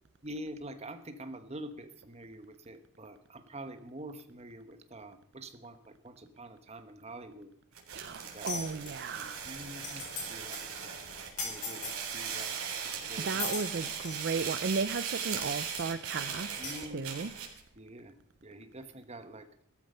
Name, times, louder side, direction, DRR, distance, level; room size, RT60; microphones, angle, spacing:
voice 1, 0.2-5.8 6.0-7.5 8.3-8.6 9.2-10.9 11.4-13.4 16.6-17.2 17.8-18.1 18.4-19.5, right 1 dB, 30° right, 8 dB, 1.2 m, -46 dB
sound 1, 7.7-17.6, right 7 dB, 85° right, 3.5 m, -38 dB
voice 2, 7.9-9.4 13.2-17.3, right 4 dB, 50° right, 13 dB, 0.5 m, -35 dB
sound 2, 8.5-8.9 9.4-9.5 9.7-10.2 10.5-10.7 11.4-12.0 12.7-12.8 13.4-14.2 15.1-15.2 15.8-15.9 16.6-16.8, left 4 dB, 35° left, 4.8 m, -38 dB
15.5 x 13.5 x 5.5 m, 0.68 s
head